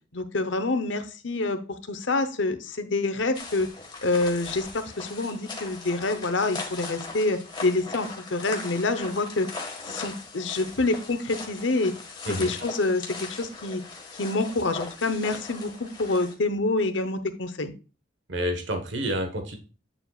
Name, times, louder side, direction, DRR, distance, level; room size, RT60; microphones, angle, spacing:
voice 1, 0.1-1.6 1.9-3.7 4.0-9.5 9.9-11.9 12.3-13.1 13.4-13.8 14.2-15.7 16.0-17.7, left 2 dB, 70° left, 9 dB, 0.9 m, -27 dB
sound 1, 3.3-16.3, left 3 dB, 20° left, 1.7 m, -39 dB
voice 2, 18.3-19.6, equal, 70° right, 5 dB, 1.4 m, -29 dB
8.6 x 7.1 x 2.4 m, 0.33 s
head